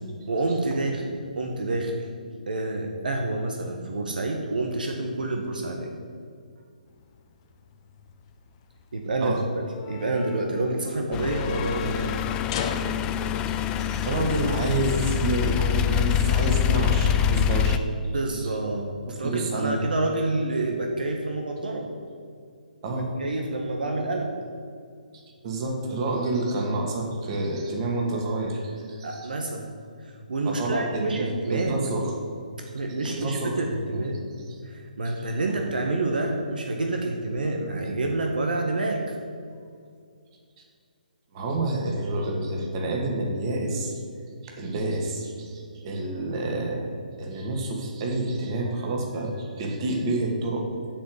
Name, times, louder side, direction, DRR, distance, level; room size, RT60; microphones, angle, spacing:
voice 1, 0.3-2.0 2.5-5.9 8.9-9.4 9.9-12.2 18.1-21.9 22.9-24.3 29.0-29.7 30.0-31.9 32.7-34.2 34.6-39.1, right 2 dB, 75° right, 2 dB, 1.5 m, -28 dB
sound 1, 6.9-15.2, left 6 dB, 35° left, 0.9 m, -39 dB
sound 2, 11.1-17.8, left 9 dB, 15° left, 0.4 m, -25 dB
voice 2, 13.4-18.1 19.1-19.8 22.8-23.1 25.1-29.3 30.4-32.1 33.0-33.6 33.9-34.1 35.0-35.1 35.5-35.6 41.3-43.9 44.4-50.7, right 2 dB, 35° right, 1 dB, 2.2 m, -29 dB
8.5 x 7.5 x 8.0 m, 2.2 s
figure-of-eight pair, 140°, 5 cm